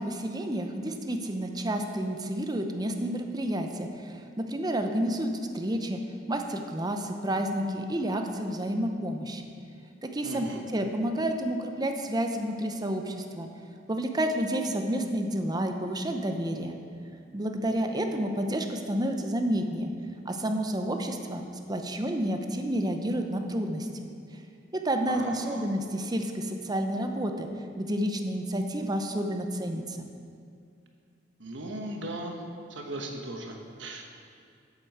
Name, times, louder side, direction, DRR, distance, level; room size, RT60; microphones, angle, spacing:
voice 1, 0.0-6.0 6.3-9.5 10.0-13.5 13.9-16.8 17.3-19.9 20.3-21.4 21.7-24.1 24.8-27.5 27.8-30.1, right 1 dB, 20° right, 5 dB, 0.8 m, -30 dB
voice 2, 10.2-10.6 25.1-25.7 31.4-32.3 32.7-34.0, right 1 dB, 80° right, 2 dB, 1.2 m, -37 dB
8.3 x 7.7 x 6.6 m, 2.4 s
head